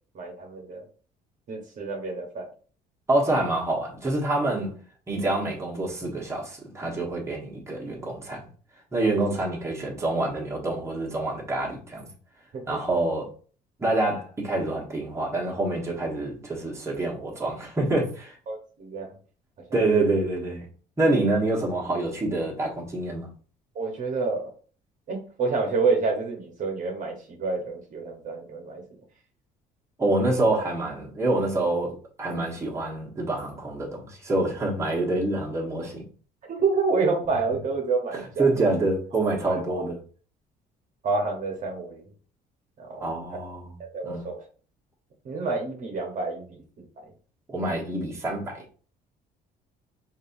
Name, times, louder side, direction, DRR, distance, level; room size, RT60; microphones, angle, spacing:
voice 1, 0.1-0.8 1.5-2.5 12.5-12.6 18.5-19.1 19.6-19.8 23.7-24.5 25.1-28.8 36.5-38.6 39.5-39.8 41.0-42.1 42.8-43.0 43.9-44.5 45.2-46.8, right 4 dB, 50° right, 1.1 m, -28 dB
voice 2, 3.1-4.7 5.1-8.5 8.9-12.1 12.7-13.3 13.8-18.3 19.7-20.6 21.0-23.3 30.0-36.0 38.4-40.0 43.0-43.7 44.0-44.3 47.5-48.6, right 2 dB, 15° right, 1.3 m, -26 dB
5.2 x 2.7 x 2.6 m
cardioid pair, 110°, 17 cm